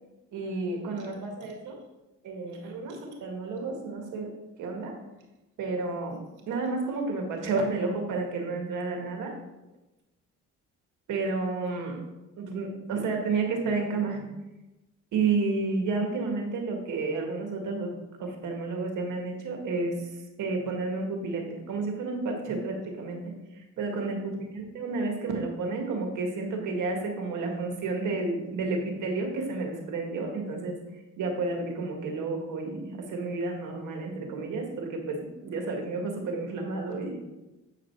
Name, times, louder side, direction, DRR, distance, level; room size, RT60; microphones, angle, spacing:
voice 1, 0.3-1.8 2.2-4.3 4.6-5.0 5.6-9.3 11.1-12.0 12.4-14.3 15.1-17.9 18.2-20.1 20.4-30.8 31.2-37.2, right 3 dB, 80° right, 2 dB, 1.8 m, -31 dB
8.3 x 5.0 x 4.6 m, 1.0 s
cardioid pair, 90°, 30 cm